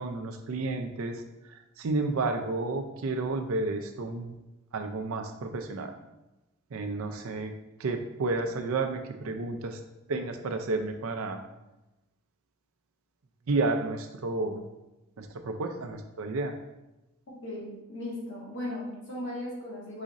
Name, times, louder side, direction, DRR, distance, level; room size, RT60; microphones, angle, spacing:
voice 1, 0.0-4.4 4.7-5.9 6.7-7.5 7.8-9.8 10.1-11.4 13.5-14.6 15.2-16.6, right 3 dB, 75° right, 6 dB, 0.5 m, -31 dB
voice 2, 17.3-20.0, left 1 dB, 55° left, -4 dB, 1.4 m, -37 dB
4.9 x 2.5 x 4.0 m, 0.99 s
head